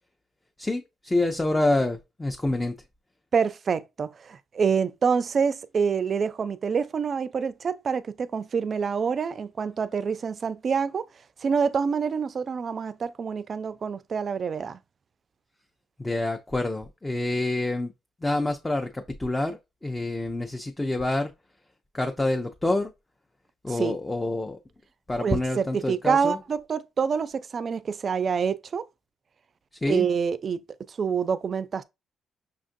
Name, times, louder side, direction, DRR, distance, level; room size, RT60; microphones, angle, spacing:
voice 1, 0.6-2.7 16.0-17.9 18.2-21.3 21.9-22.9 23.6-24.6 25.1-26.4 29.8-30.1, left 2 dB, 15° left, 0.5 m, -27 dB
voice 2, 3.3-11.1 11.4-14.8 23.7-24.0 25.2-28.9 29.9-30.6 30.9-31.8, right 6 dB, 45° right, 0.3 m, -27 dB
5.7 x 2.5 x 2.5 m
cardioid pair, 90°, 0 cm